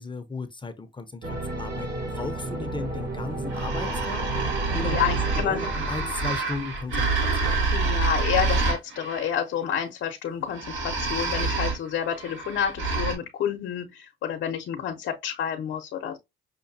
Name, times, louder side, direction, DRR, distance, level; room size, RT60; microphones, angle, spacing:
voice 1, 0.0-1.9 2.1-5.0 5.4-7.7, left 3 dB, 25° left, 0.6 m, -36 dB
sound 1, 1.2-6.8, right 2 dB, 55° right, 1.3 m, -33 dB
sound 2, 3.5-9.3 10.5-13.1, right 3 dB, 80° right, 1.6 m, -27 dB
voice 2, 4.7-5.6 7.7-16.2, left 9 dB, 70° left, 0.7 m, -29 dB
5.8 x 2.2 x 2.6 m
cardioid pair, 90°, 20 cm